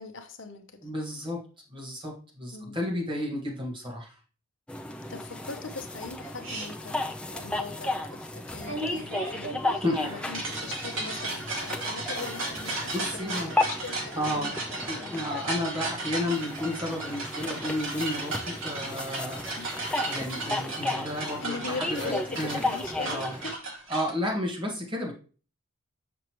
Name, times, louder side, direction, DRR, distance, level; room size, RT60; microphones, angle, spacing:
voice 1, 0.0-0.9 2.5-2.9 5.1-14.6 15.0-15.3 19.5-19.7 21.4-23.6, left 4 dB, 60° left, 7 dB, 0.8 m, -40 dB
voice 2, 0.8-1.4 1.7-4.1 9.8-10.4 12.6-13.5 14.1-14.5 14.9-22.6 22.9-23.4 23.9-25.1, left 1 dB, 20° right, -2 dB, 1.7 m, -32 dB
sound 1, 4.7-23.6, left 2 dB, 5° left, 0.3 m, -34 dB
sound 2, 6.4-6.7 8.7-24.1, right 2 dB, 60° right, 2.2 m, -35 dB
6.5 x 6.1 x 3.0 m, 0.37 s
head